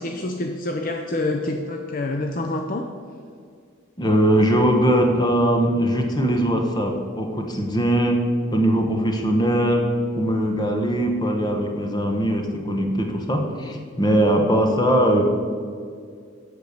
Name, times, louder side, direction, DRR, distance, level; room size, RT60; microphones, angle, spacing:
voice 1, 0.0-2.9, left 2 dB, 45° left, 4 dB, 0.5 m, -27 dB
voice 2, 4.0-8.2 8.5-9.8 10.2-15.2, right 1 dB, 20° left, 3 dB, 1.0 m, -20 dB
8.0 x 6.6 x 6.6 m, 2.2 s
head